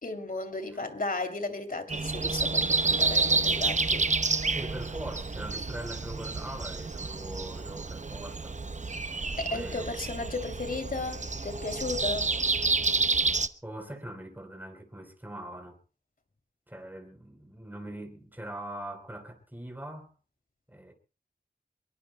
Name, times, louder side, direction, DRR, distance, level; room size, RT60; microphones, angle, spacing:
voice 1, 0.0-4.1 9.4-12.3, left 3 dB, 55° left, 2.9 m, -35 dB
Breathing, 1.9-13.5, right 3 dB, 45° right, 0.8 m, -29 dB
voice 2, 4.5-8.6 9.4-9.9 13.6-15.8 16.7-20.1 20.7-20.9, right 1 dB, 10° right, 3.8 m, -42 dB
25.0 x 22.0 x 2.2 m
wide cardioid pair, 65°, 17 cm